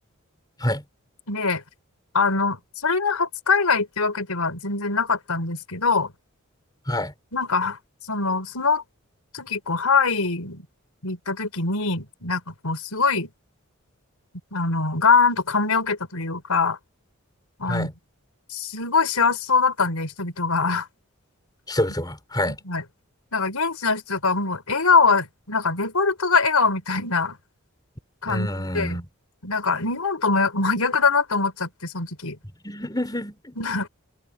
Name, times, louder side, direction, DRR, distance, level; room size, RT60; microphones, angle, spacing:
voice 1, 1.3-1.6 2.1-6.1 7.3-7.8 8.1-8.8 9.3-10.7 11.0-13.3 14.5-16.8 17.6-17.9 18.5-20.9 22.6-22.8 23.3-27.4 28.2-29.0 29.4-32.4 33.6-33.9, left 4 dB, 85° left, 4.7 m, -23 dB
voice 2, 21.7-22.6 28.3-29.0 32.6-33.5, left 1 dB, 20° left, 5.6 m, -27 dB
open air
head